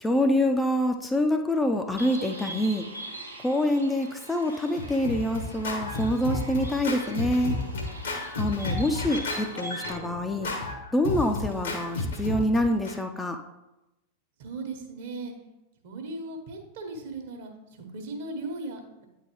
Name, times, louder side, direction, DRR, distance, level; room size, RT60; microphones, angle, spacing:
voice 1, 0.0-2.9 3.4-7.6 8.4-10.5 10.9-13.4, left 1 dB, 10° left, 4 dB, 0.5 m, -26 dB
Bird, 2.0-9.9, right 2 dB, 85° right, 1.0 m, -42 dB
Scratching (performance technique), 4.5-13.0, left 2 dB, 65° left, 1.0 m, -32 dB
voice 2, 14.4-15.3 15.8-19.0, right 2 dB, 55° right, 3 dB, 1.1 m, -37 dB
8.8 x 3.8 x 3.1 m, 0.96 s
figure-of-eight pair, 90°, 0 cm